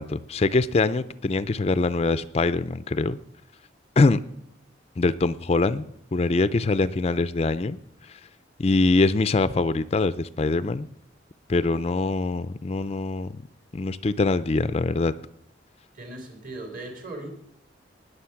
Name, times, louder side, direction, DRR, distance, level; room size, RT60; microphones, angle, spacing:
voice 1, 0.0-3.2 4.0-4.2 5.0-5.9 6.1-7.8 8.6-10.9 11.5-13.3 13.7-15.1, left 3 dB, 35° left, 14 dB, 0.4 m, -23 dB
voice 2, 15.9-17.3, right 2 dB, 45° right, 4 dB, 3.3 m, -38 dB
19.5 x 6.7 x 5.8 m, 0.76 s
head